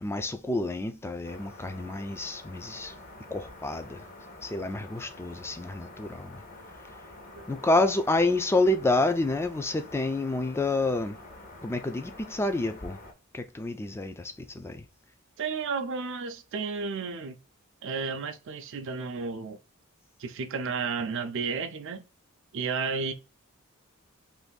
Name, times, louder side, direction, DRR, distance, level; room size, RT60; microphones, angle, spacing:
voice 1, 0.0-2.9 3.3-4.0 4.4-6.4 7.5-11.2 11.6-13.0 13.3-14.8, left 2 dB, 10° left, 0.3 m, -28 dB
sound 1, 1.2-13.1, left 2 dB, 40° left, 0.8 m, -47 dB
voice 2, 7.4-7.7 15.4-17.4 17.8-19.6 20.2-22.0 22.5-23.1, right 5 dB, 60° right, 0.4 m, -32 dB
2.6 x 2.5 x 3.7 m
head